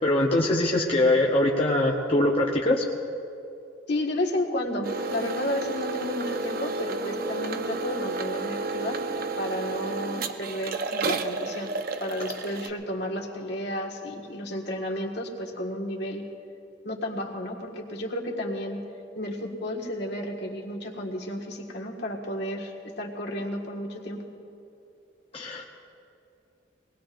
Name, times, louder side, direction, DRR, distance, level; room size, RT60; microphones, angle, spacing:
voice 1, 0.0-2.8 25.3-25.6, left 1 dB, 30° left, -2 dB, 0.8 m, -22 dB
voice 2, 3.9-9.0 9.4-11.7 12.0-16.2 16.8-18.8 19.2-24.3, left 1 dB, 60° left, -1 dB, 1.8 m, -32 dB
sound 1, 4.8-12.7, right 3 dB, 50° right, 0.6 m, -31 dB
23.5 x 19.5 x 2.6 m, 2.7 s
head